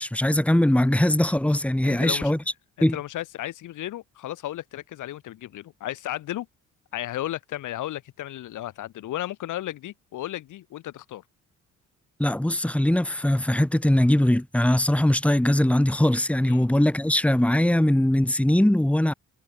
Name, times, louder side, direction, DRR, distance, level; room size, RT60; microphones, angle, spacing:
voice 1, 0.0-2.4 2.8-3.0 12.2-19.1, left 1 dB, 5° left, 2.6 m, -21 dB
voice 2, 1.8-2.3 2.8-6.5 6.9-11.2 16.5-16.7, left 14 dB, 80° left, 5.4 m, -34 dB
cardioid pair, 90°, 30 cm